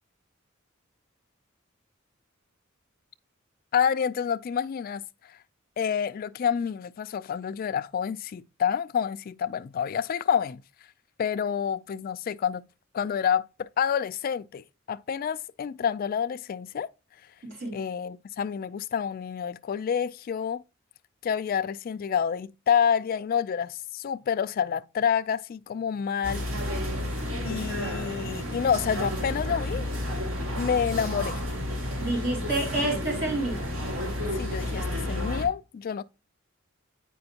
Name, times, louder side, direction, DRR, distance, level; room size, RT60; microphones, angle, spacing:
voice 1, 3.7-5.4 5.8-10.6 11.2-12.7 12.9-16.9 17.7-20.6 21.2-26.5 27.4-29.9 30.6-31.4 34.4-36.0, left 7 dB, 45° left, 0.3 m, -28 dB
voice 2, 17.4-17.8 32.0-33.7, right 2 dB, 60° right, 2.6 m, -29 dB
sound 1, 26.2-35.5, left 1 dB, 85° right, 2.1 m, -31 dB
7.7 x 5.1 x 2.8 m
head